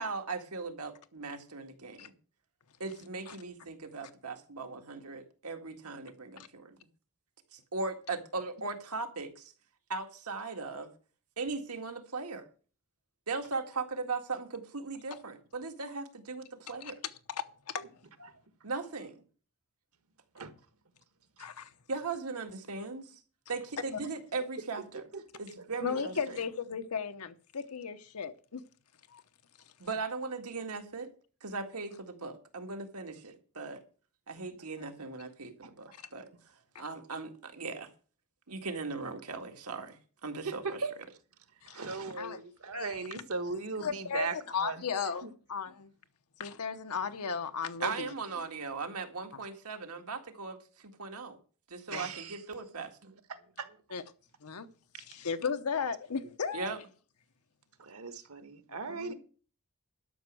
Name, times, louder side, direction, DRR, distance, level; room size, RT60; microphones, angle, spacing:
voice 1, 0.0-2.1 2.8-6.8 7.5-9.5 9.9-10.9 11.4-12.5 13.3-17.0 18.6-19.2 21.9-23.2 23.5-25.0 25.4-26.4 29.8-31.1 31.4-33.8 34.3-36.3 36.8-37.9 38.5-40.8 47.8-51.4 51.7-53.0 56.5-56.8, right 4 dB, 90° right, 1.9 m, -38 dB
voice 2, 17.3-17.9 21.4-21.7 25.8-28.6 29.1-29.2 35.9-36.0 41.6-41.8 42.2-42.4 42.7-43.2 43.8-45.9 46.4-48.1 51.9-52.1 53.9-54.0 54.4-54.7 55.0-56.7 58.9-59.1, left 6 dB, 90° left, 0.9 m, -36 dB
voice 3, 40.4-40.9 41.6-44.8 45.2-45.3 51.9-52.4 53.0-53.8 54.9-55.0 57.8-59.1, right 4 dB, 70° right, 1.4 m, -38 dB
12.0 x 6.2 x 7.6 m
head